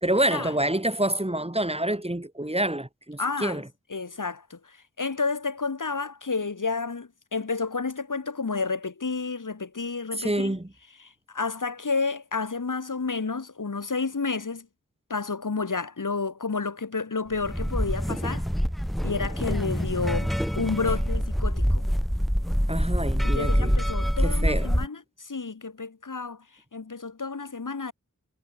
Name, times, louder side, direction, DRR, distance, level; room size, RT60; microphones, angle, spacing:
voice 1, 0.0-3.6 10.2-10.7 22.7-23.7 24.2-24.7, right 1 dB, 20° right, 4.6 m, -27 dB
voice 2, 3.2-3.6 3.9-10.6 11.0-14.7 15.1-18.5 19.0-21.8 23.2-26.4 26.7-27.9, left 4 dB, 75° left, 3.3 m, -30 dB
sound 1, 17.4-24.9, equal, ahead, 0.6 m, -25 dB
wide cardioid pair, 65°, 31 cm